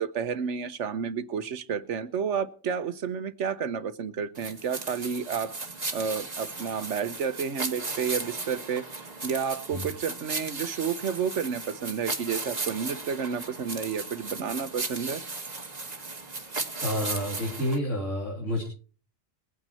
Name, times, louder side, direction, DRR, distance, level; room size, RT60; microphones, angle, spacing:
voice 1, 0.0-5.5 5.9-15.2, right 6 dB, 75° right, 13 dB, 1.3 m, -31 dB
sound 1, 4.4-17.8, right 3 dB, 35° right, 1.7 m, -36 dB
voice 2, 16.5-18.6, equal, 85° left, -2 dB, 3.6 m, -30 dB
21.5 x 9.1 x 4.3 m, 0.38 s
omnidirectional pair, 1.2 m